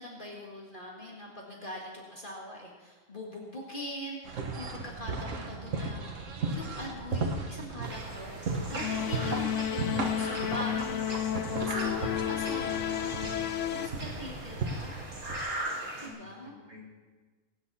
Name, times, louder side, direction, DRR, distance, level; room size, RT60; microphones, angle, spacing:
voice 1, 0.0-13.2 13.7-14.9 16.0-16.5, left 1 dB, 35° left, -3 dB, 2.1 m, -42 dB
sound 1, 4.2-15.4, right 3 dB, 60° right, 1.6 m, -36 dB
sound 2, 7.8-16.1, right 1 dB, 80° right, 3.4 m, -40 dB
sound 3, 8.8-13.9, left 11 dB, 65° left, 0.9 m, -32 dB
voice 2, 15.7-16.8, left 1 dB, 25° right, -6 dB, 4.0 m, -49 dB
22.0 x 9.7 x 4.3 m, 1.3 s
omnidirectional pair, 1.5 m